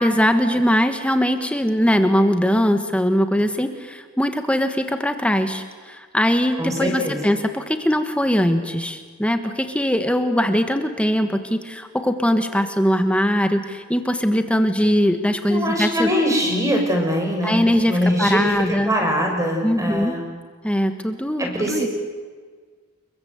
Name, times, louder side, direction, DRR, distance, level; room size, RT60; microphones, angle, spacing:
voice 1, 0.0-16.1 17.4-18.9 19.6-20.2 20.6-21.9, equal, 5° left, 7 dB, 1.4 m, -21 dB
voice 2, 6.6-7.2 15.5-18.5 18.9-20.2 21.4-21.9, equal, 15° right, 2 dB, 6.4 m, -22 dB
29.0 x 22.5 x 8.1 m, 1.5 s
head